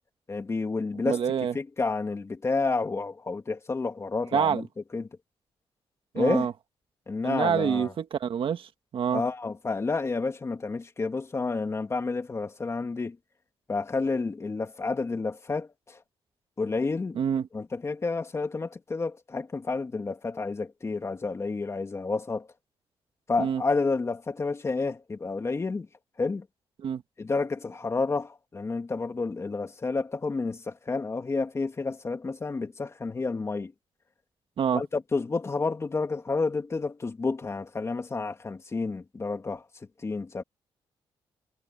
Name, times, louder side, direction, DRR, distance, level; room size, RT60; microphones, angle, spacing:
voice 1, 0.3-1.2 1.5-4.7 4.9-5.1 6.1-6.5 7.1-7.9 9.1-13.2 13.7-16.0 16.6-17.2 17.5-22.5 23.3-25.9 26.2-26.4 27.2-33.7 34.7-39.6 40.0-40.4, left 3 dB, 30° left, 2.8 m, -30 dB
voice 2, 1.1-1.5 4.3-4.6 6.1-6.5 7.2-9.2 17.1-17.5 23.4-23.6 26.8-27.0 34.6-34.8, right 8 dB, 65° right, 1.5 m, -27 dB
cardioid pair, 120°, 10 cm